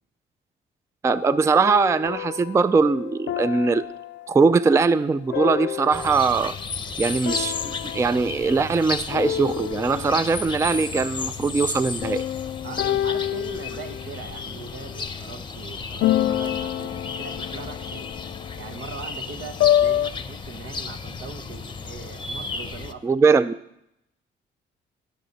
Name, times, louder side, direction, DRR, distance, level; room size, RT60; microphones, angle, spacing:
voice 1, 1.0-3.9 4.3-6.5 7.0-12.2 23.0-23.5, right 4 dB, 15° right, 15 dB, 0.3 m, -21 dB
sound 1, 1.1-6.5 7.2-8.8 9.1-10.4 12.0-15.1 16.0-20.1, left 12 dB, 70° left, 0.4 m, -28 dB
sound 2, 5.9-22.9, left 4 dB, 25° left, 0.7 m, -34 dB
voice 2, 12.6-18.1 18.6-23.2, right 5 dB, 80° right, 7 dB, 1.2 m, -40 dB
19.0 x 6.3 x 4.0 m, 0.79 s
cardioid pair, 90°, 20 cm